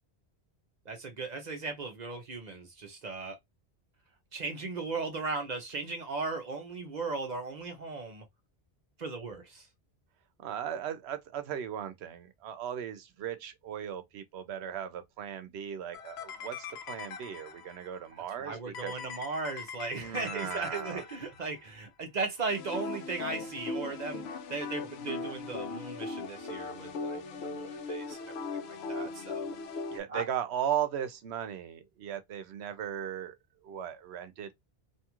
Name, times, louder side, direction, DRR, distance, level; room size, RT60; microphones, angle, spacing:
voice 1, 0.9-3.4 4.3-8.2 9.0-9.7 18.4-24.2 24.5-28.2 28.7-29.5 30.1-30.2, right 3 dB, 45° right, 0.7 m, -37 dB
voice 2, 10.4-18.9 20.0-21.0 29.9-33.3 33.6-34.5, right 9 dB, 75° right, 0.9 m, -37 dB
sound 1, 15.9-17.9 18.7-21.6 22.5-30.0, left 4 dB, 75° left, 0.8 m, -39 dB
2.6 x 2.4 x 2.9 m
omnidirectional pair, 1.1 m